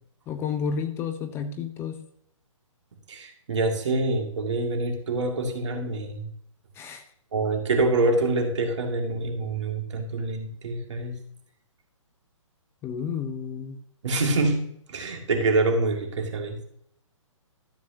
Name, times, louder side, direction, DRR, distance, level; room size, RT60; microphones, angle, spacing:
voice 1, 0.3-2.0 6.8-7.0 12.8-13.8, left 6 dB, 15° left, 8 dB, 0.5 m, -31 dB
voice 2, 3.1-6.3 7.3-11.1 14.0-14.6 14.9-16.6, right 2 dB, 60° right, 3 dB, 2.1 m, -26 dB
13.0 x 7.5 x 2.8 m, 0.69 s
hypercardioid pair, 135°, 17 cm